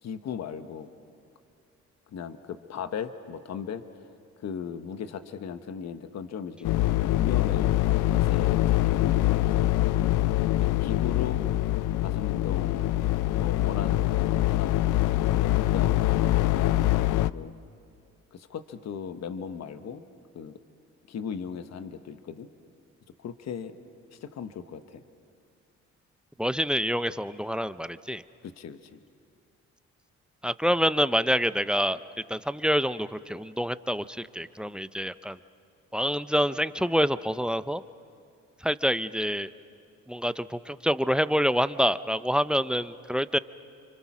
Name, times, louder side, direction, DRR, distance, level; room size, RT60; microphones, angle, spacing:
voice 1, 0.0-0.9 2.1-4.1 4.4-6.8 7.2-7.8 8.1-9.7 10.6-11.4 12.0-12.9 13.3-14.8 15.1-16.9 17.1-17.5 18.3-20.0 20.3-20.6 21.1-22.5 23.2-23.8 24.1-25.0 28.4-29.0, left 7 dB, 60° left, 10 dB, 1.2 m, -37 dB
sound 1, 6.6-17.3, left 14 dB, 90° left, 0.5 m, -24 dB
voice 2, 26.4-28.2 30.4-32.0 32.3-35.4 35.9-37.8 38.6-39.5 40.1-43.4, equal, 5° right, 14 dB, 0.5 m, -26 dB
28.0 x 25.0 x 6.1 m, 2.5 s
cardioid pair, 90°, 30 cm